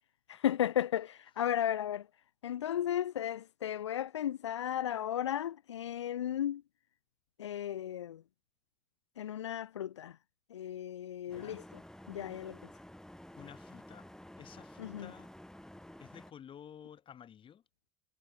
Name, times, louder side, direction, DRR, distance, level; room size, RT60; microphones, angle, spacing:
voice 1, 0.3-2.1 2.4-6.6 7.4-8.2 9.2-10.2 10.5-11.6 12.1-12.6 14.8-15.1, left 10 dB, 80° left, 0.4 m, -34 dB
voice 2, 11.3-11.7 13.3-14.1 14.4-15.3 16.0-17.6, left 9 dB, 35° left, 2.1 m, -53 dB
sound 1, 11.3-16.3, left 1 dB, 5° left, 6.5 m, -52 dB
figure-of-eight pair, 65°, 15 cm